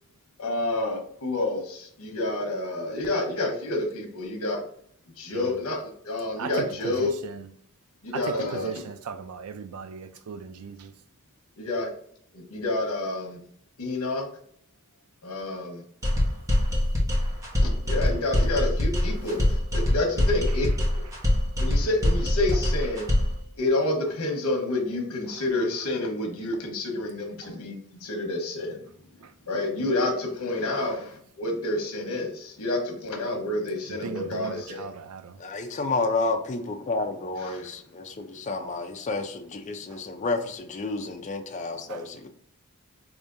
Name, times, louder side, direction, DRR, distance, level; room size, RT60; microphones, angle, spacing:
voice 1, 0.4-4.6 5.2-7.1 8.0-8.7 11.6-11.9 12.3-13.4 13.8-14.3 15.2-15.8 17.6-19.4 19.7-20.7 21.6-23.1 23.6-28.8 29.5-34.8, left 2 dB, 85° left, 1.0 m, -29 dB
voice 2, 5.3-5.6 6.4-7.5 8.1-10.9 19.8-19.9 20.5-20.6 22.5-22.6 25.3-25.4 27.4-27.6 29.2-29.3 29.8-29.9 33.9-35.4 38.6-38.7 39.9-40.0 41.9-42.1, right 6 dB, 75° right, 0.4 m, -38 dB
sound 1, 16.0-23.4, left 1 dB, 15° right, 0.9 m, -23 dB
voice 3, 35.4-42.3, left 3 dB, 35° left, 0.4 m, -30 dB
4.9 x 2.7 x 2.5 m
head